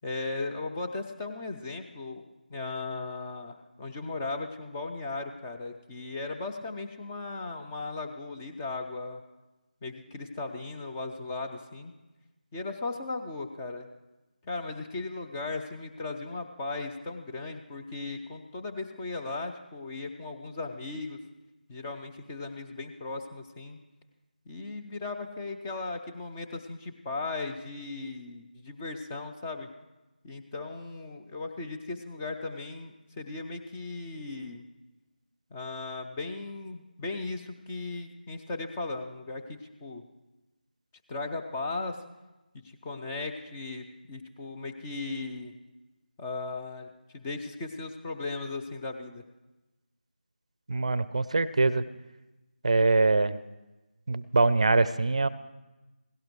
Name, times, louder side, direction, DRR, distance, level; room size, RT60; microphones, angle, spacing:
voice 1, 0.0-2.2 2.5-9.2 9.8-11.9 12.5-13.9 14.4-21.2 21.7-23.8 24.5-29.7 30.2-34.6 35.5-40.0 41.1-42.0 42.6-45.5 46.2-49.2, left 3 dB, 10° left, 3 dB, 0.4 m, -37 dB
voice 2, 50.7-51.8 52.6-53.4 54.1-55.3, right 3 dB, 40° right, 17 dB, 0.5 m, -23 dB
17.0 x 17.0 x 3.1 m, 1.1 s
figure-of-eight pair, 165°, 5 cm